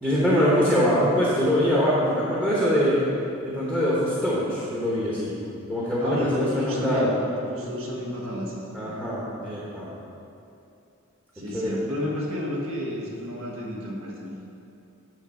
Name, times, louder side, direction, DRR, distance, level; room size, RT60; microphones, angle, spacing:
voice 1, 0.0-3.0 3.4-5.3 5.7-7.1 8.7-9.9 11.5-11.8, equal, 5° right, -8 dB, 1.0 m, -23 dB
voice 2, 6.0-8.9 11.3-14.4, left 1 dB, 65° right, -3 dB, 1.5 m, -31 dB
8.6 x 3.9 x 6.4 m, 2.7 s
head